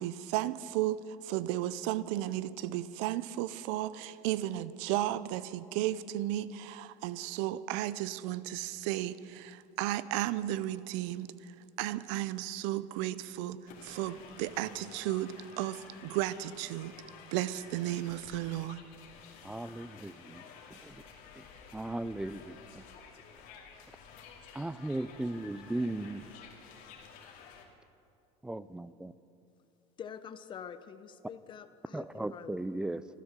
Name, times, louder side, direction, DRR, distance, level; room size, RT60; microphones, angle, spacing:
voice 1, 0.0-11.3 11.8-17.0 17.3-18.8, right 14 dB, 80° right, 0.5 m, -34 dB
sound 1, 13.7-27.6, left 6 dB, 65° left, 2.3 m, -52 dB
voice 2, 19.4-20.4 20.8-21.0 21.4-21.5 21.7-22.8 24.5-26.3 28.4-29.1 31.9-33.0, right 2 dB, 5° right, 0.3 m, -37 dB
voice 3, 30.0-33.1, left 7 dB, 30° left, 0.7 m, -47 dB
13.0 x 13.0 x 6.7 m
cardioid pair, 130°, 15 cm